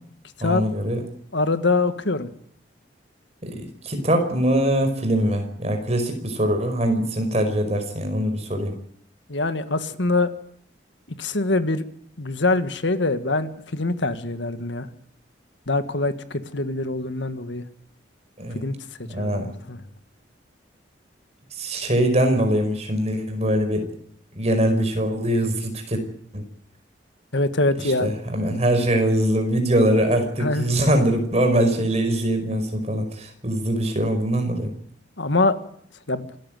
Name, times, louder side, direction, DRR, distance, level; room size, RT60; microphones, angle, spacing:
voice 1, 0.4-1.0 3.4-8.7 18.4-18.6 19.0-19.5 21.5-23.8 24.3-26.0 26.3-26.4 27.8-34.7, right 1 dB, 35° right, 5 dB, 5.1 m, -22 dB
voice 2, 1.3-2.3 9.3-10.3 11.2-11.8 12.2-14.9 15.7-17.6 18.6-18.8 19.2-19.8 27.3-28.1 30.4-30.7 35.2-35.6 36.1-36.3, left 2 dB, 75° left, 11 dB, 1.8 m, -24 dB
27.0 x 14.0 x 9.2 m, 0.66 s
head